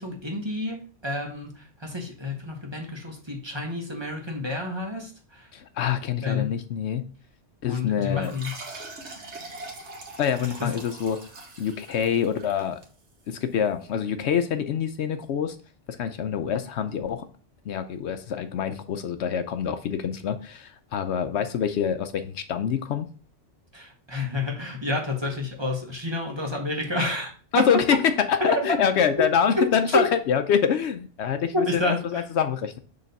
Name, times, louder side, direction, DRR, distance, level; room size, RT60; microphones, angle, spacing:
voice 1, 0.0-5.5 6.2-6.6 7.7-8.5 10.6-10.7 23.7-27.3 27.6-27.8 28.4-28.6 29.6-30.1 31.5-32.2, left 2 dB, 25° right, 1 dB, 1.2 m, -29 dB
voice 2, 5.5-7.1 7.6-8.3 10.2-11.2 11.6-12.8 13.3-15.6 16.0-17.2 17.7-23.1 27.5-32.8, left 7 dB, 70° left, 9 dB, 0.8 m, -25 dB
sound 1, 8.2-13.4, right 2 dB, 70° right, 1.6 m, -42 dB
6.7 x 3.2 x 5.2 m, 0.40 s
omnidirectional pair, 1.2 m